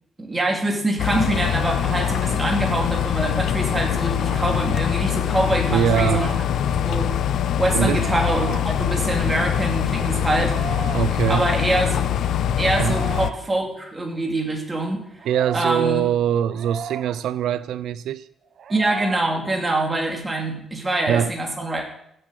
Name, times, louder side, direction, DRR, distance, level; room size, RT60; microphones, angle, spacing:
voice 1, 0.2-6.4 6.7-7.1 7.6-10.6 11.3-12.2 12.6-15.3 15.5-16.0 18.7-21.9, right 2 dB, 15° right, 2.6 m, -24 dB
sound 1, 1.0-13.3, left 10 dB, 65° left, 0.6 m, -23 dB
sound 2, 1.8-2.4 4.0-4.6 5.7-6.5 7.8-8.6 10.3-11.1 12.6-13.4 15.2-15.8 16.5-17.2 18.6-19.3, right 7 dB, 55° right, 0.8 m, -35 dB
voice 2, 5.7-6.2 7.7-8.0 10.9-11.4 12.8-13.0 15.3-18.3 21.1-21.3, right 10 dB, 85° right, 0.4 m, -22 dB
16.0 x 7.8 x 6.4 m
cardioid pair, 155°, 0 cm